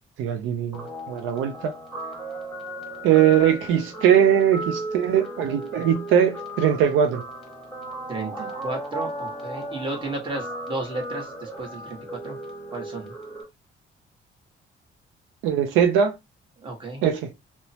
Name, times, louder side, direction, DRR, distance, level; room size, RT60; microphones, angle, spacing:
voice 1, 0.2-1.7 3.0-7.2 15.4-16.2 17.0-17.3, right 9 dB, 85° right, 0.4 m, -21 dB
Guitar, 0.7-13.4, right 1 dB, ahead, 1.2 m, -36 dB
voice 2, 8.1-12.4 12.7-13.1 16.6-17.0, right 2 dB, 25° right, 1.2 m, -33 dB
2.9 x 2.0 x 2.7 m
cardioid pair, 90°, 20 cm